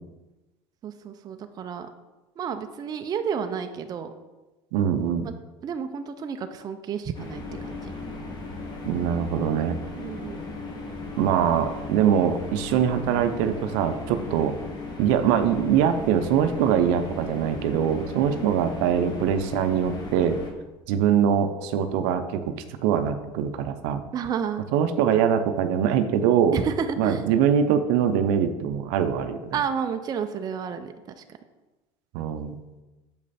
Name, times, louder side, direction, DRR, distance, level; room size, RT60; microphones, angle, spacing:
voice 1, 0.8-1.9 2.4-4.1 5.2-5.3 5.6-7.9 10.0-10.4 18.2-18.6 24.1-24.6 26.5-27.3 29.5-31.2, right 7 dB, 30° right, 7 dB, 0.5 m, -31 dB
voice 2, 4.7-5.3 8.8-9.8 11.2-14.6 15.0-20.4 20.9-22.5 22.8-24.0 24.7-26.6 27.0-29.5 32.1-32.6, right 8 dB, 75° right, 9 dB, 0.6 m, -23 dB
sound 1, 7.1-20.5, left 3 dB, 35° left, 1.1 m, -37 dB
6.7 x 5.2 x 4.2 m, 1.1 s
supercardioid pair, 120°, 13 cm